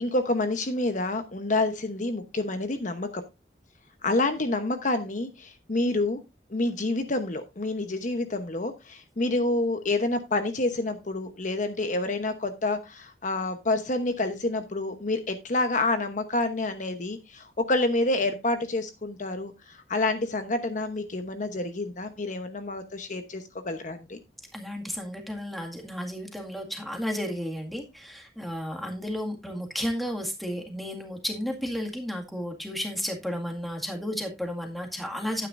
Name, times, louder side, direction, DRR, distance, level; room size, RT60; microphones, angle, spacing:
voice 1, 0.0-3.2 4.0-6.2 6.5-24.2, left 2 dB, 45° left, 8 dB, 1.0 m, -28 dB
voice 2, 24.5-35.5, equal, ahead, 2 dB, 2.0 m, -33 dB
11.5 x 9.4 x 2.6 m, 0.23 s
head